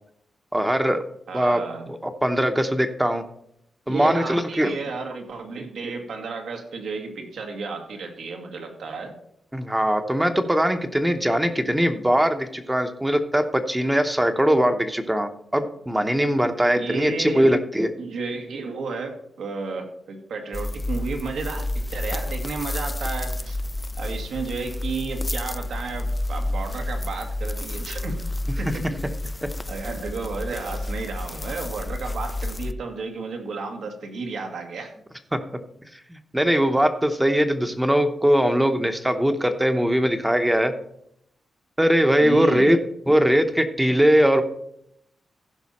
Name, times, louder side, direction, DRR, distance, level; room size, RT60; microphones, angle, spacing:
voice 1, 0.5-1.0 1.3-1.6 1.9-3.2 3.9-4.8 9.5-17.9 35.3-35.4 36.1-40.7 41.8-42.8 43.1-44.4, equal, 5° right, 8 dB, 0.8 m, -21 dB
voice 2, 1.3-1.9 3.9-9.1 16.7-17.5 18.0-21.7 21.9-23.6 24.0-28.3 28.6-28.9 29.7-34.9 42.2-42.8, right 4 dB, 80° right, 3 dB, 2.0 m, -32 dB
sound 1, 20.5-32.7, left 1 dB, 20° left, 0.4 m, -30 dB
15.0 x 5.6 x 4.2 m, 0.73 s
wide cardioid pair, 160°, 0 cm